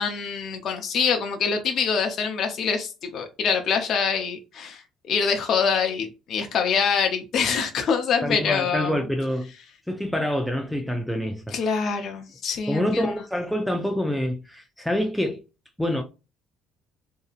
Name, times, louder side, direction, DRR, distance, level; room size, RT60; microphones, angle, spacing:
voice 1, 0.0-9.0 11.5-13.0, left 6 dB, 55° left, 0.5 m, -25 dB
voice 2, 8.2-9.5 9.9-11.7 12.7-15.4 15.8-16.0, equal, ahead, 0.4 m, -26 dB
2.7 x 2.4 x 2.4 m
supercardioid pair, 95°, 0 cm